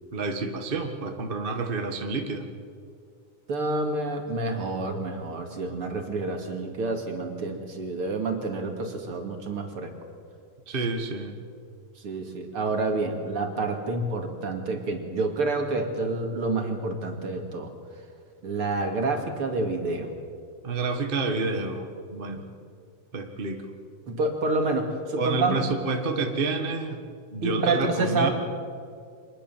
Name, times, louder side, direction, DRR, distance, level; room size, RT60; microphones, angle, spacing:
voice 1, 0.1-2.5 10.7-11.4 20.6-22.5 23.1-23.7 25.2-27.0 27.3-28.3, right 3 dB, 30° right, 4 dB, 1.0 m, -29 dB
voice 2, 3.5-9.9 12.0-17.7 18.4-20.1 24.1-25.6 27.4-28.3, right 3 dB, 45° right, 4 dB, 3.0 m, -28 dB
25.0 x 20.0 x 7.4 m, 2.2 s
omnidirectional pair, 3.6 m